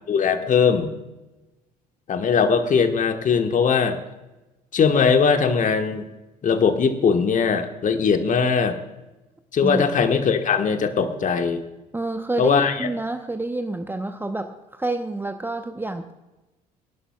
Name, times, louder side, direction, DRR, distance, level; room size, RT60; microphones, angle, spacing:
voice 1, 0.1-0.9 2.1-4.0 4.7-6.0 6.4-8.8 9.5-11.6 12.4-12.9, left 6 dB, 40° left, 7 dB, 1.4 m, -20 dB
voice 2, 11.9-16.1, right 2 dB, 10° right, 7 dB, 0.9 m, -28 dB
24.5 x 11.5 x 2.4 m, 1.0 s
figure-of-eight pair, 55°, 20 cm